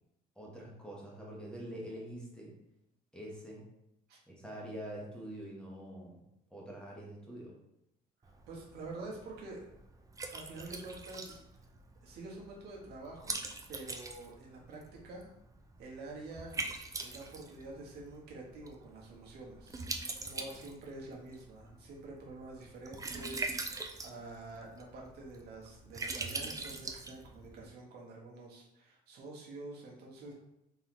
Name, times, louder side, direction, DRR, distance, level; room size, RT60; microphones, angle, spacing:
voice 1, 0.4-2.5 3.1-3.6 4.3-6.2 6.5-7.6, right 1 dB, 5° left, -4 dB, 1.2 m, -45 dB
Liquid, 8.2-27.7, right 3 dB, 20° right, 0.5 m, -43 dB
voice 2, 8.5-9.7 10.3-11.4 12.0-13.3 13.7-15.3 15.8-16.6 17.0-19.8 20.2-30.3, right 2 dB, 70° right, -2 dB, 1.2 m, -47 dB
3.9 x 3.5 x 3.0 m, 0.83 s
cardioid pair, 110°, 17 cm